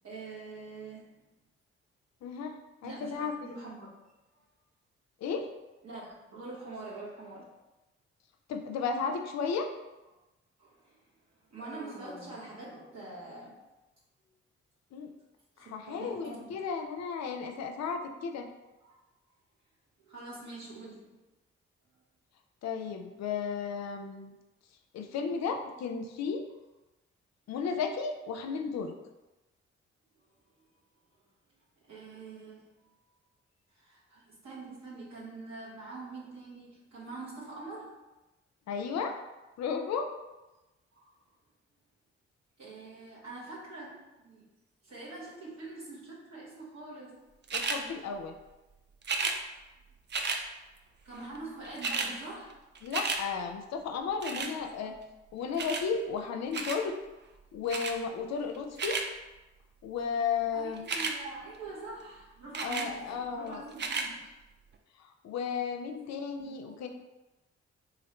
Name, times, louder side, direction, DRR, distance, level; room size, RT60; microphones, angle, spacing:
voice 1, 0.0-1.1 2.8-3.9 5.8-7.5 10.6-11.0 11.5-13.6 15.9-16.5 18.8-19.0 20.0-21.2 31.9-32.9 33.7-38.0 40.9-41.1 42.6-44.5 44.8-47.2 51.0-52.5 54.3-55.0 60.5-64.2 66.4-66.9, right 3 dB, 60° right, -7 dB, 1.0 m, -45 dB
voice 2, 2.2-3.3 5.2-5.5 8.5-9.7 14.9-15.1 15.6-18.5 22.6-24.4 24.9-26.4 27.5-29.0 38.7-39.2 39.6-40.1 47.5-48.3 49.2-49.3 52.8-54.9 55.3-57.0 57.5-59.0 59.8-60.9 62.6-63.6 65.0-66.9, left 5 dB, 60° left, 5 dB, 0.5 m, -34 dB
Human voice, 11.6-13.3, left 1 dB, 15° left, 0.6 m, -51 dB
sound 1, 47.5-47.8 49.0-49.4 50.1-50.4 51.4-51.5 51.6-52.1 52.5-53.2 54.2-54.5 55.6-55.9 56.5-56.8 57.7-58.0 58.6-59.1 60.8-61.2 62.5-62.9 63.7-64.1 64.7-64.8, right 4 dB, 35° right, 0.4 m, -32 dB
3.1 x 2.6 x 2.9 m, 1.1 s
hypercardioid pair, 45°, 30 cm